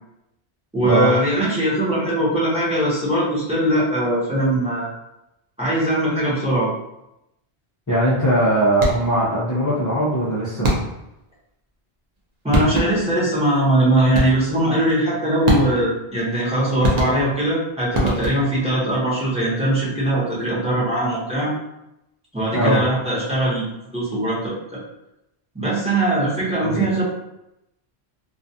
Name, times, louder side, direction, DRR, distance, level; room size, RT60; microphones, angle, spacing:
voice 1, 0.7-4.9 5.6-6.7 12.4-21.5 22.3-24.8 25.5-27.0, right 1 dB, 5° right, -8 dB, 0.7 m, -21 dB
voice 2, 7.9-10.7 22.5-22.8 26.6-26.8, right 1 dB, 30° left, -9 dB, 0.3 m, -20 dB
sound 1, 8.7-9.2 10.6-11.2 12.2-12.3 12.5-13.2 14.1-14.6 15.5-16.0 16.8-17.5 17.9-18.6, equal, 50° right, 0.6 m, -23 dB
2.3 x 2.3 x 2.7 m, 0.86 s
omnidirectional pair, 1.1 m